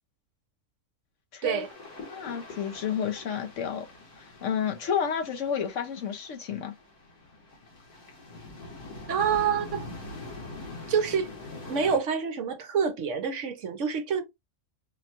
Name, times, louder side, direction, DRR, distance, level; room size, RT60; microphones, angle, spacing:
voice 1, 1.3-1.7 2.1-3.9 4.2-6.7, left 7 dB, 65° left, 1.0 m, -31 dB
sound 1, 1.6-12.0, left 2 dB, 90° left, 1.9 m, -44 dB
voice 2, 9.1-9.9 10.9-11.3 11.7-14.2, right 6 dB, 65° right, 0.9 m, -27 dB
5.1 x 2.2 x 2.8 m
omnidirectional pair, 1.5 m